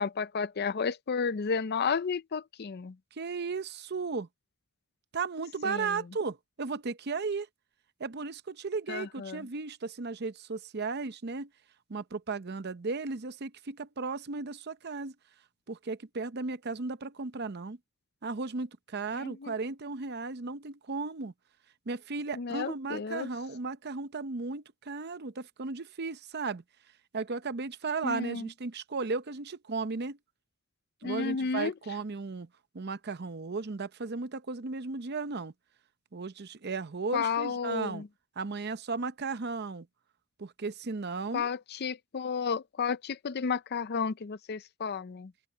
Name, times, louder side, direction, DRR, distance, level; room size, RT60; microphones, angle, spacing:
voice 1, 0.0-3.0 5.6-6.0 8.9-9.5 19.2-19.5 22.3-23.3 28.0-28.5 31.0-31.7 37.1-38.1 41.3-45.3, left 5 dB, 50° left, 0.5 m, -32 dB
voice 2, 3.1-4.3 5.1-7.5 8.0-11.5 11.9-15.1 15.7-17.8 18.2-21.3 21.9-26.6 27.1-30.2 31.0-32.5 32.7-35.5 36.1-38.0 38.4-39.9 40.4-41.5, right 4 dB, 50° right, 0.7 m, -35 dB
open air
head